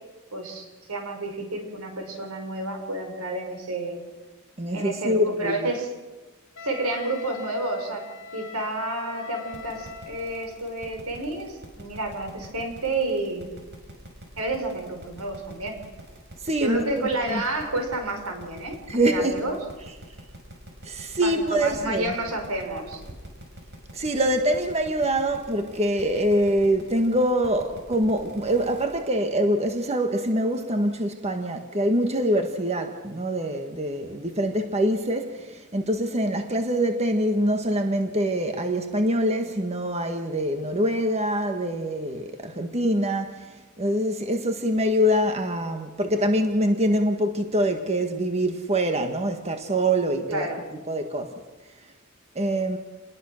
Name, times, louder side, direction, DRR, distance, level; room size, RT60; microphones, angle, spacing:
voice 1, 0.3-4.0 4.7-5.9 6.6-8.0 8.3-13.5 14.4-15.8 16.6-18.8 19.0-19.6 21.2-23.0 50.3-50.6, right 2 dB, 85° right, 5.7 m, -30 dB
voice 2, 4.6-5.6 16.4-17.4 18.9-19.4 20.8-22.1 23.9-43.4 43.8-50.5 50.9-51.3 52.3-52.8, equal, 30° right, 1.5 m, -24 dB
Wind instrument woodwind instrument, 6.6-10.5, left 3 dB, 60° left, 2.2 m, -41 dB
sound 1, 9.5-29.0, equal, 50° right, 6.2 m, -44 dB
28.5 x 20.5 x 6.4 m
head